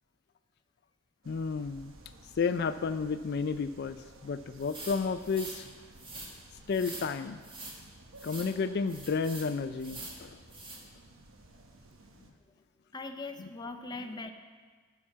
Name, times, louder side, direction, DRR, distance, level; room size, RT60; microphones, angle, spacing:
sound 1, 1.2-12.3, right 2 dB, 85° right, 1.1 m, -55 dB
voice 1, 1.3-1.9 2.4-4.0 4.2-5.6 6.7-7.4 8.2-10.3, left 5 dB, 55° left, 11 dB, 0.4 m, -31 dB
sound 2, 4.6-5.6 6.0-6.3 6.7-7.1 7.4-7.8 8.2-8.5 8.9-9.5 9.8-10.2 10.5-10.8, right 2 dB, 25° right, 1.8 m, -44 dB
voice 2, 12.9-14.3, left 3 dB, 20° left, 6 dB, 0.7 m, -40 dB
11.5 x 5.9 x 7.3 m, 1.5 s
head